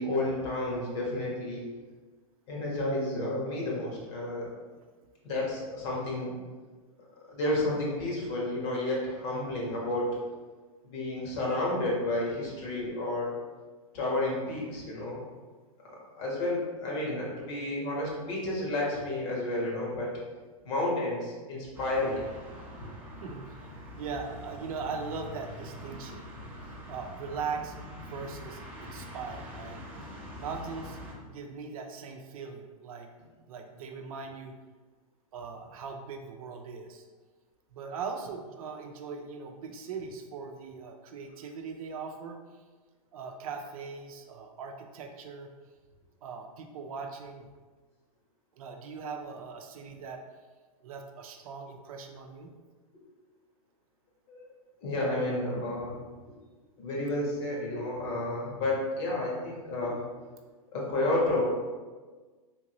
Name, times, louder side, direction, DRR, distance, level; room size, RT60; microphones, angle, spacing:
voice 1, 0.0-1.6 2.5-4.5 5.2-6.3 7.3-10.1 10.8-13.3 13.9-15.2 15.8-20.1 20.6-22.2 54.3-54.5 54.8-56.0 56.8-60.0 60.7-61.4, left 2 dB, 50° left, -3 dB, 1.3 m, -31 dB
sound 1, 21.7-31.1, left 1 dB, 10° right, 0.7 m, -44 dB
voice 2, 23.2-26.3 26.9-29.8 30.4-33.1 33.5-34.6 35.3-37.0 37.7-42.6 43.1-45.5 46.2-47.5 48.6-50.2 50.8-52.5, right 5 dB, 70° right, 4 dB, 0.5 m, -40 dB
3.5 x 2.6 x 2.9 m, 1.4 s
hypercardioid pair, 130°, 19 cm